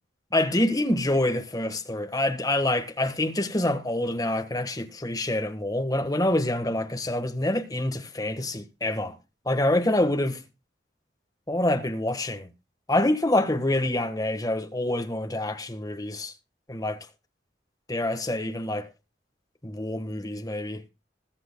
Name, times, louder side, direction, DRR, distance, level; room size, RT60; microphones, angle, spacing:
voice 1, 0.3-9.1 9.4-10.4 11.5-12.5 12.9-16.3 16.7-17.0 17.9-18.9 19.6-20.8, left 1 dB, 20° left, 1.4 m, -26 dB
20.5 x 7.9 x 2.3 m
head